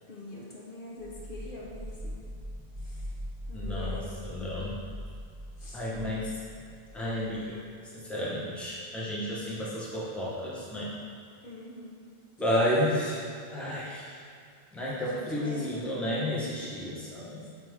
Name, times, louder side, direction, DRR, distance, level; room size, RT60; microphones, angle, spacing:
voice 1, 0.1-2.2 2.8-3.2 3.5-4.2 5.6-5.8 11.4-12.0 15.0-15.7 17.4-17.5, left 2 dB, 55° left, -5 dB, 1.1 m, -44 dB
sound 1, 1.0-7.7, equal, 25° right, 0.6 m, -41 dB
voice 2, 3.5-4.8 5.7-6.3 6.9-7.6 7.9-10.9 12.4-13.2 13.5-14.2 14.7-17.5, left 1 dB, ahead, -7 dB, 1.0 m, -31 dB
8.5 x 3.4 x 3.5 m, 2.4 s
omnidirectional pair, 1.1 m